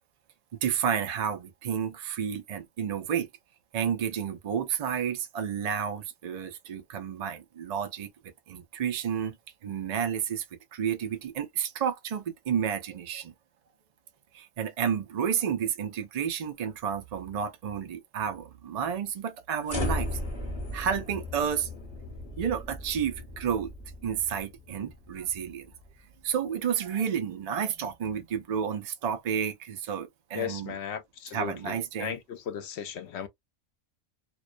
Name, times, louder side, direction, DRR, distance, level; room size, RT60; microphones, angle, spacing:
voice 1, 0.6-3.3 3.7-8.1 8.5-9.4 9.6-10.4 10.7-13.3 14.3-20.2 20.7-21.7 22.4-23.7 24.0-25.7 26.2-30.7 31.3-32.2, right 8 dB, 70° right, 0.3 m, -31 dB
sound 1, 19.7-26.0, left 2 dB, 25° left, 0.7 m, -36 dB
voice 2, 30.3-33.3, left 8 dB, 65° left, 0.8 m, -36 dB
2.3 x 2.1 x 2.4 m
omnidirectional pair, 1.3 m